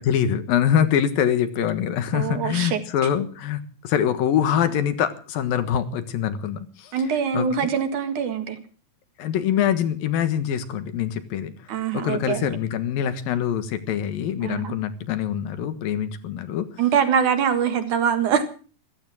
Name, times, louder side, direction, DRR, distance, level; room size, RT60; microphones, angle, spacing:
voice 1, 0.1-6.9 7.3-7.5 9.2-16.7, left 9 dB, 85° left, 11 dB, 3.3 m, -24 dB
voice 2, 2.1-2.8 6.9-8.6 11.7-12.5 14.4-14.7 16.8-18.4, right 7 dB, 65° right, 8 dB, 3.1 m, -23 dB
15.0 x 14.5 x 6.3 m, 0.39 s
omnidirectional pair, 4.0 m